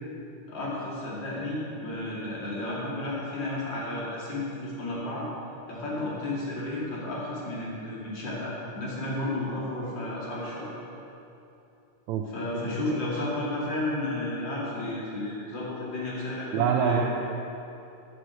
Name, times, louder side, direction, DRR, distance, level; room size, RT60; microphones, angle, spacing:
voice 1, 0.5-5.3 5.7-10.7 12.3-17.0, left 2 dB, 35° left, -6 dB, 2.8 m, -32 dB
voice 2, 12.5-13.0 16.5-17.0, right 8 dB, 90° right, 3 dB, 1.6 m, -26 dB
10.0 x 7.8 x 6.2 m, 2.8 s
omnidirectional pair, 3.8 m